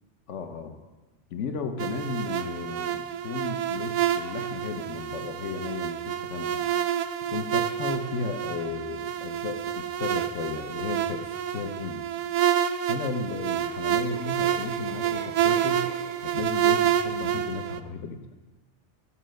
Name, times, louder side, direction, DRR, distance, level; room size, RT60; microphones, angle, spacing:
voice 1, 0.3-0.8 1.3-6.6 7.3-12.1 12.9-15.9 16.2-18.2, left 5 dB, 80° left, 7 dB, 1.1 m, -34 dB
sound 1, 1.8-17.8, right 10 dB, 80° right, 0.9 m, -28 dB
sound 2, 13.3-16.7 17.1-17.4, right 5 dB, 50° right, 0.4 m, -43 dB
13.0 x 5.6 x 6.3 m, 1.2 s
omnidirectional pair, 1.2 m